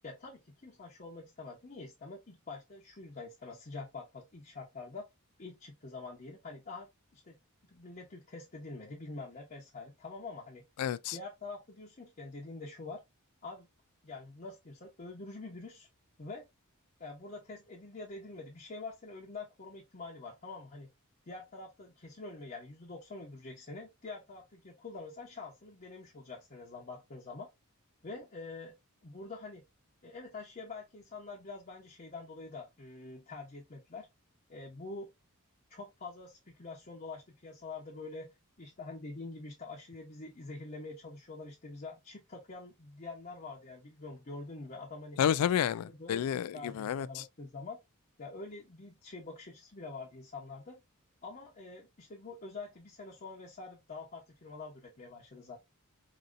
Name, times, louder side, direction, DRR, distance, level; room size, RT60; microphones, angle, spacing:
voice 1, 0.0-5.0 5.4-7.4 7.7-10.6 11.1-13.0 13.4-13.7 14.0-15.9 16.2-16.4 17.0-20.9 21.3-27.5 28.0-28.7 29.0-29.6 30.0-34.1 34.5-35.1 35.7-45.2 46.0-46.2 46.5-47.8 48.2-50.8 51.2-55.6, left 3 dB, 40° left, 0.9 m, -46 dB
voice 2, 10.8-11.2 45.2-47.1, left 9 dB, 90° left, 0.3 m, -30 dB
5.0 x 2.7 x 2.5 m
head